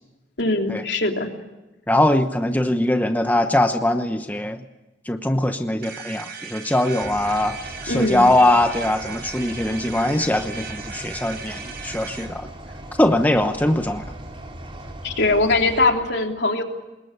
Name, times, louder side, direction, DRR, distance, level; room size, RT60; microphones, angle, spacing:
voice 1, 0.4-1.3 7.9-8.3 15.0-16.6, left 2 dB, 70° left, 3 dB, 3.2 m, -21 dB
voice 2, 1.9-4.6 5.1-7.6 7.8-12.5 13.0-14.1, left 1 dB, 10° left, 7 dB, 1.0 m, -21 dB
sound 1, 5.8-12.3, right 6 dB, 60° right, 4.1 m, -37 dB
sound 2, 7.0-15.9, right 1 dB, 30° right, 3.5 m, -38 dB
26.0 x 21.5 x 9.8 m, 1.0 s
head